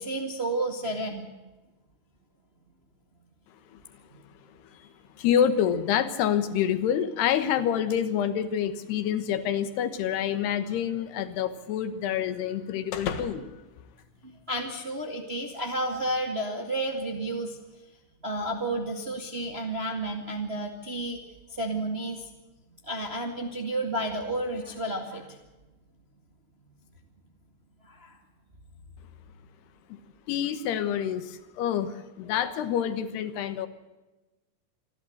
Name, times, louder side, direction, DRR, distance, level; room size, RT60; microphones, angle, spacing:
voice 1, 0.0-1.3 14.2-17.6 18.2-21.2 21.5-22.3 22.8-25.4 27.8-28.2 32.3-32.4, right 1 dB, 30° right, 3 dB, 1.2 m, -31 dB
voice 2, 5.2-13.5 29.9-30.0 30.3-33.7, left 9 dB, 80° left, 11 dB, 3.3 m, -27 dB
sound 1, 10.3-14.7, left 7 dB, 60° left, 2.2 m, -41 dB
27.0 x 13.0 x 7.9 m, 1.1 s
omnidirectional pair, 4.7 m